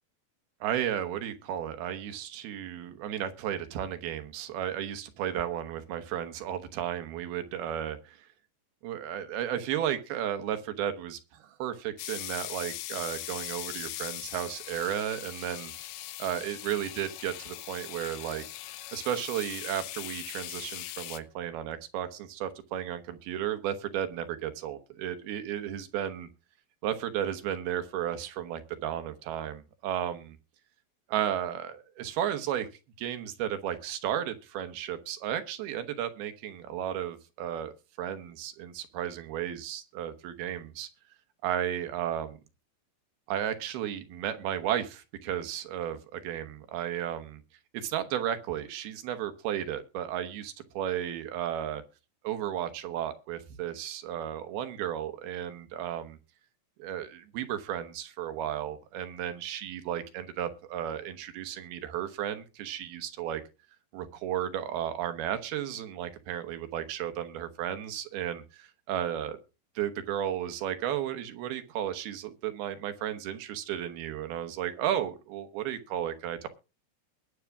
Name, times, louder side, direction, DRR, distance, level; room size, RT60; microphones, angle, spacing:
voice 1, 0.6-8.3 8.8-15.7 16.2-18.4 18.9-26.3 26.8-30.4 31.1-32.7 33.0-40.9 41.4-42.4 43.3-47.4 47.7-51.8 52.2-56.2 56.8-63.4 63.9-69.4 69.8-76.5, right 10 dB, 85° right, 9 dB, 3.1 m, -34 dB
sound 1, 12.0-21.2, left 14 dB, 75° left, 2.1 m, -40 dB
21.0 x 7.1 x 3.6 m, 0.31 s
omnidirectional pair, 4.3 m